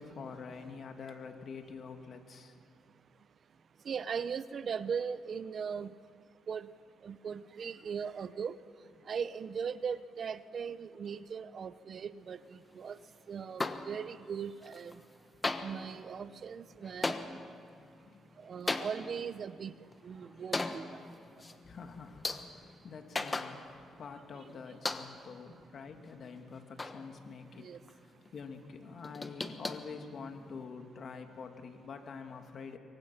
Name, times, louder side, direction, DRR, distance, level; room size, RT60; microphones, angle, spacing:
voice 1, 0.0-2.5 8.9-9.1 18.0-18.2 21.6-23.7 24.0-27.7 28.0-32.8, left 5 dB, 55° left, 5 dB, 2.4 m, -46 dB
voice 2, 3.9-5.9 6.5-6.7 7.0-8.6 9.1-13.0 13.3-15.0 15.6-17.2 18.4-19.7 20.0-20.9 27.6-27.8, right 6 dB, 50° right, 15 dB, 0.8 m, -39 dB
sound 1, 13.6-14.4 14.6-15.2 15.4-24.0 24.3-24.4 24.8-25.4 25.9-27.6 27.9-28.0 28.3-28.4 28.7-30.7, left 2 dB, 25° left, 1.4 m, -39 dB
27.5 x 23.5 x 5.9 m, 2.3 s
cardioid pair, 90°, 0 cm